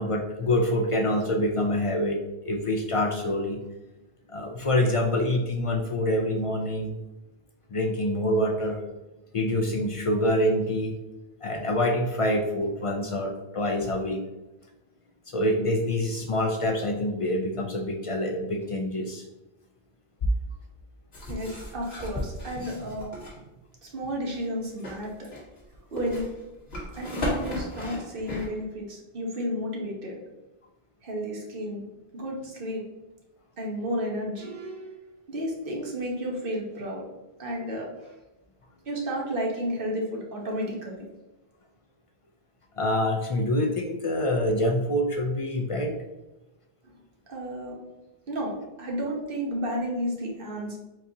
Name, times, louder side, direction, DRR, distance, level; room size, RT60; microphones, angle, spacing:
voice 1, 0.0-3.6 4.3-6.9 7.7-8.8 9.3-11.0 11.4-14.3 15.3-19.3 42.8-46.0, left 1 dB, 50° left, 3 dB, 0.4 m, -26 dB
sound 1, 21.1-23.3 24.7-28.5, equal, 75° left, 1.7 m, -35 dB
voice 2, 21.3-23.2 23.8-25.3 25.9-26.2 26.9-30.2 31.0-31.8 32.1-32.8 33.6-34.9 35.3-37.1 37.4-38.1 38.8-41.1 46.8-46.9 47.3-47.8 48.3-50.8, equal, 60° right, -1 dB, 1.2 m, -32 dB
4.6 x 4.0 x 2.8 m, 1.0 s
omnidirectional pair, 1.0 m